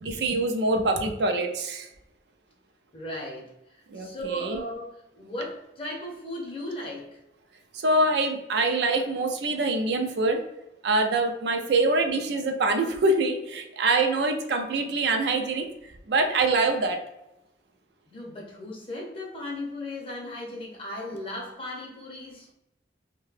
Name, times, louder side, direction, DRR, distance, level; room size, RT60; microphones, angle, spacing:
voice 1, 0.0-1.9 3.9-4.6 7.7-10.4 10.8-15.7 16.1-17.0, right 2 dB, 65° right, 5 dB, 0.4 m, -25 dB
voice 2, 2.9-7.2 18.1-22.5, left 1 dB, 30° left, -2 dB, 0.7 m, -37 dB
2.7 x 2.1 x 3.1 m, 0.87 s
head